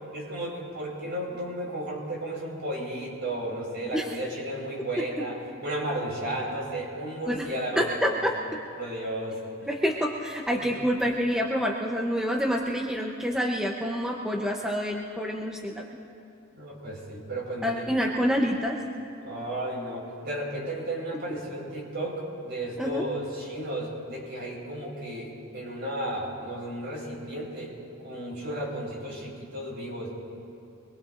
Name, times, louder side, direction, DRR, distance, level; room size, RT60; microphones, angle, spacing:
voice 1, 0.1-8.3 8.8-9.7 10.6-10.8 16.6-17.9 19.2-27.7 28.0-30.1, right 1 dB, 55° right, -3 dB, 4.6 m, -34 dB
voice 2, 7.8-8.3 9.7-15.8 17.6-18.8 22.8-23.1, equal, 5° right, 0 dB, 0.8 m, -27 dB
25.0 x 21.0 x 2.5 m, 2.5 s
head